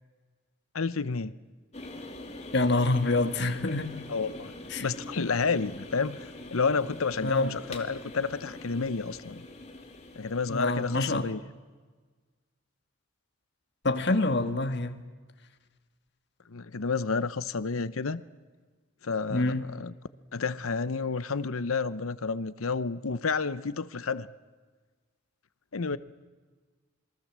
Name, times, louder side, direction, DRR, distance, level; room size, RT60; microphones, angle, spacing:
voice 1, 0.7-1.3 4.1-4.5 4.8-9.4 10.2-11.4 16.5-18.2 19.0-19.9 20.3-24.3 25.7-26.0, left 4 dB, 85° left, 0.8 m, -30 dB
sound 1, 1.7-11.3, left 2 dB, 30° left, 2.5 m, -44 dB
voice 2, 2.5-4.0 4.7-4.9 7.2-7.5 10.5-11.2 13.8-15.0 19.3-19.7, left 2 dB, 55° left, 1.7 m, -26 dB
27.5 x 22.5 x 7.5 m
head